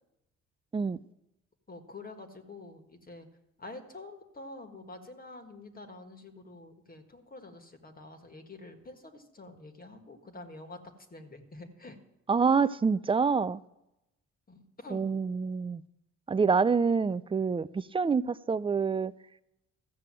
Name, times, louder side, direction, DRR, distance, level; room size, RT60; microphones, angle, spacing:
voice 1, 1.7-3.3 3.6-10.8 11.1-12.0 14.5-15.0, left 2 dB, 30° left, 1.6 m, -47 dB
voice 2, 12.3-13.6 14.9-15.8 16.3-19.1, right 5 dB, 20° right, 0.4 m, -27 dB
14.0 x 6.6 x 7.6 m
cardioid pair, 90°, 30 cm